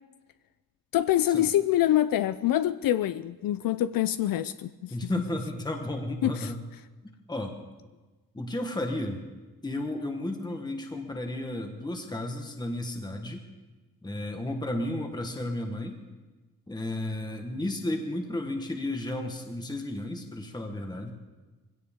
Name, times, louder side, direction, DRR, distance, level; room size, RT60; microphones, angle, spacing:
voice 1, 0.9-5.1 6.2-6.5, left 12 dB, 70° left, 13 dB, 0.5 m, -25 dB
voice 2, 4.9-6.6 7.3-7.5 8.3-9.2 9.6-13.4 14.0-16.0 16.7-21.1, left 1 dB, 10° left, 3 dB, 1.3 m, -33 dB
21.0 x 17.0 x 3.6 m, 1.2 s
wide cardioid pair, 140°, 36 cm